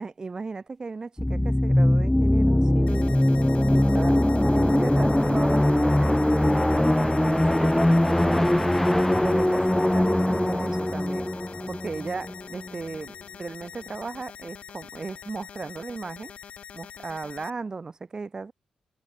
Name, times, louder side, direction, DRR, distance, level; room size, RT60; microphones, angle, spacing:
voice 1, 0.0-3.2 3.7-4.2 4.5-8.7 9.2-11.3 11.7-16.3 16.7-18.5, right 4 dB, 35° right, 2.8 m, -36 dB
sound 1, 1.2-12.7, left 1 dB, 5° left, 0.3 m, -21 dB
sound 2, 2.9-17.5, left 8 dB, 70° left, 3.8 m, -44 dB
cardioid pair, 80°, 2 cm